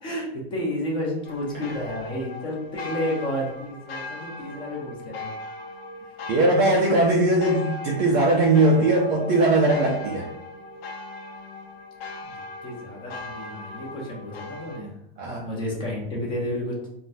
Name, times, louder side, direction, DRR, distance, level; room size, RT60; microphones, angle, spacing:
voice 1, 0.0-5.3 12.2-12.3 12.6-14.9 15.2-16.9, left 1 dB, 15° left, -3 dB, 0.7 m, -31 dB
sound 1, 1.2-14.8, left 2 dB, 70° left, 0.7 m, -39 dB
voice 2, 6.3-10.3 15.2-15.5, right 2 dB, 30° right, -2 dB, 0.4 m, -20 dB
3.8 x 2.2 x 2.5 m, 0.79 s
supercardioid pair, 155°, 30 cm